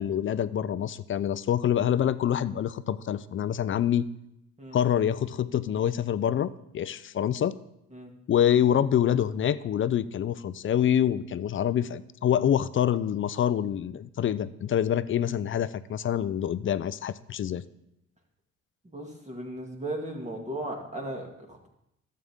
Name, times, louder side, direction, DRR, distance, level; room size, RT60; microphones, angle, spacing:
voice 1, 0.0-4.1 4.7-7.6 8.3-17.6, left 10 dB, 40° left, 16 dB, 0.4 m, -26 dB
voice 2, 18.8-21.7, right 1 dB, 25° right, 1 dB, 2.0 m, -36 dB
12.5 x 7.7 x 3.6 m, 0.81 s
cardioid pair, 90°, 30 cm